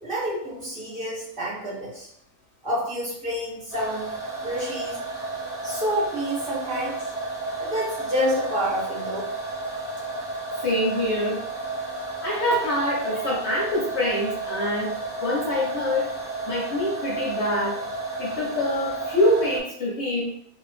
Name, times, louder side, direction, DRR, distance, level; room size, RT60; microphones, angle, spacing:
voice 1, 0.0-2.1 2.6-4.1 4.4-5.0 5.6-7.0 7.6-9.3, equal, 40° right, -7 dB, 1.3 m, -28 dB
sound 1, 3.7-19.6, right 3 dB, 15° left, 0.4 m, -32 dB
voice 2, 10.6-11.4 12.2-14.9 15.2-16.1 16.5-17.8 18.2-20.3, left 1 dB, 55° left, -4 dB, 0.9 m, -25 dB
2.8 x 2.6 x 3.1 m, 0.68 s
omnidirectional pair, 1.5 m